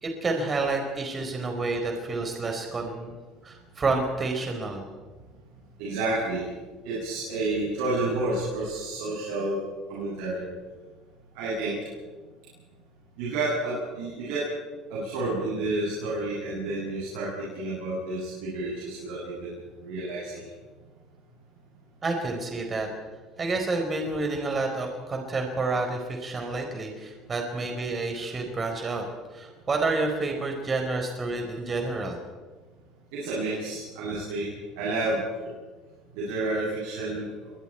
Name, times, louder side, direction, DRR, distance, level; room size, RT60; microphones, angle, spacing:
voice 1, 0.0-3.1 3.4-4.8 22.0-22.9 23.4-29.0 29.3-32.2, right 3 dB, 30° right, 3 dB, 4.5 m, -29 dB
voice 2, 5.8-6.5 6.8-9.6 9.9-10.4 11.3-11.8 13.2-14.4 14.9-19.5 19.8-20.5 33.1-34.5 34.8-35.2 36.2-37.3, right 2 dB, 80° right, -5 dB, 7.6 m, -30 dB
28.5 x 22.0 x 4.6 m, 1.4 s
supercardioid pair, 85°, 0 cm